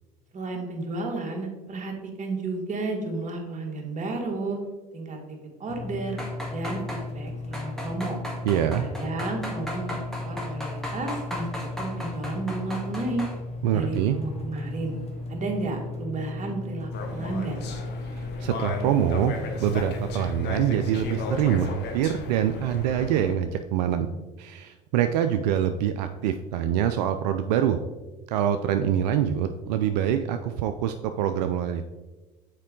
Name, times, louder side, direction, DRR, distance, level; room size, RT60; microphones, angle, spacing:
voice 1, 0.3-4.6 4.9-6.2 6.5-8.2 8.8-11.5 11.8-13.2 13.7-14.9 15.3-17.6, right 2 dB, 35° right, 1 dB, 1.7 m, -32 dB
sound 1, 5.7-21.7, left 2 dB, 30° left, 1.1 m, -36 dB
sound 2, 6.1-7.0 7.5-13.4 13.7-14.1 14.5-14.6, left 1 dB, ahead, 1.7 m, -36 dB
voice 2, 8.4-8.9 13.6-14.2 18.1-19.3 19.6-24.1 24.4-27.8 28.3-31.9, right 10 dB, 75° right, 8 dB, 0.4 m, -25 dB
sound 3, 16.9-23.4, left 4 dB, 55° left, 1.1 m, -35 dB
6.5 x 4.6 x 3.7 m, 1.2 s
hypercardioid pair, 75°, 21 cm